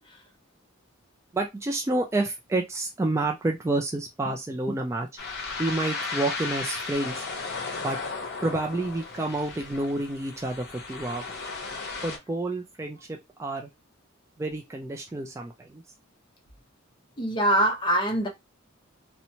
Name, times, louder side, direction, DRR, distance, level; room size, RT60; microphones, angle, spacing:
voice 1, 1.3-5.1 5.6-7.3 7.8-8.0 8.4-11.4 12.0-13.7 14.4-15.8, right 2 dB, 15° right, 0.3 m, -29 dB
sound 1, 5.2-12.2, left 4 dB, 55° left, 0.8 m, -35 dB
voice 2, 17.2-18.3, right 1 dB, 25° left, 0.8 m, -23 dB
2.9 x 2.1 x 2.7 m
head